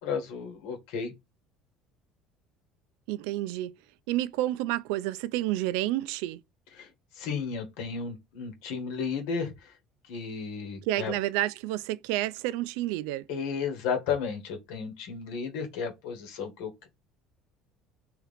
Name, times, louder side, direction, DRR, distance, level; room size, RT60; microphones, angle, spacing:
voice 1, 0.0-1.1 6.8-9.7 10.1-11.1 13.3-16.9, left 6 dB, 75° left, 1.5 m, -33 dB
voice 2, 3.1-3.7 4.1-6.4 10.8-13.3, right 15 dB, 85° right, 0.3 m, -30 dB
3.6 x 3.0 x 3.4 m
cardioid pair, 175°, 0 cm